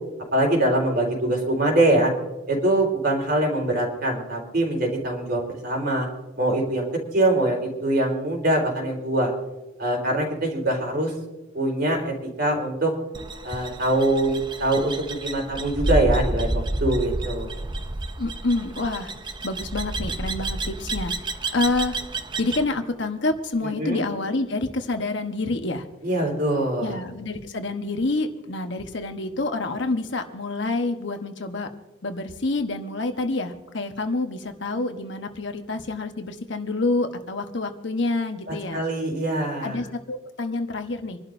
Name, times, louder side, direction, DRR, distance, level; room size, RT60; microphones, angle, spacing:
voice 1, 0.3-2.1 2.5-6.1 6.4-6.9 7.1-9.3 9.8-11.1 11.5-12.1 12.4-12.9 13.4-17.5 23.8-24.0 26.0-27.0 38.5-39.8, right 1 dB, 45° right, 0 dB, 4.2 m, -23 dB
sound 1, 13.1-22.7, right 2 dB, 20° right, 0.6 m, -30 dB
voice 2, 18.2-22.0 22.4-25.9 26.8-31.7 32.0-38.8 39.6-41.2, left 2 dB, 60° left, 6 dB, 1.1 m, -28 dB
26.5 x 12.0 x 2.7 m, 1.1 s
head